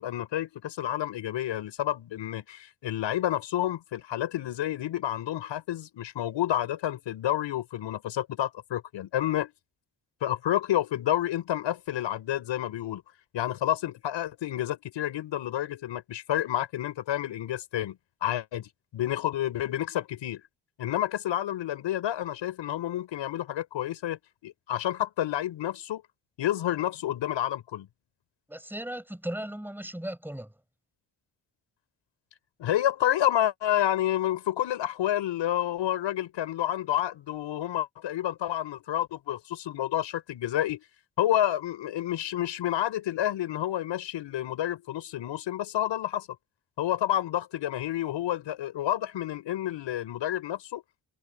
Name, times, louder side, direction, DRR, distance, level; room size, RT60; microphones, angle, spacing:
voice 1, 0.0-9.5 10.2-13.0 13.3-20.4 20.8-26.0 26.4-27.9 32.6-40.8 41.2-46.3 46.8-50.8, left 12 dB, 85° left, 6.0 m, -29 dB
voice 2, 28.5-30.5, right 1 dB, 5° right, 6.1 m, -36 dB
cardioid pair, 65°, 43 cm